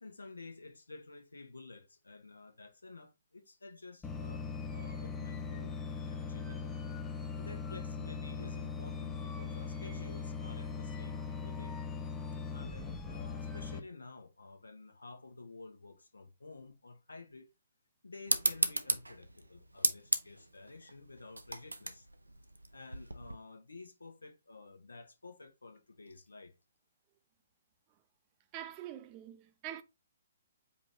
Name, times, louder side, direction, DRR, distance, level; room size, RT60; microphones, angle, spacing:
voice 1, 0.0-6.7 7.1-11.8 12.5-17.5 18.0-22.1 22.7-26.5, left 3 dB, 75° left, 1.0 m, -51 dB
sound 1, 4.0-13.8, left 5 dB, 15° left, 0.6 m, -40 dB
sound 2, 18.3-23.3, right 2 dB, 80° right, 0.6 m, -35 dB
voice 2, 28.5-29.8, right 11 dB, 30° right, 0.5 m, -44 dB
5.1 x 2.8 x 3.5 m
figure-of-eight pair, 125°, 0 cm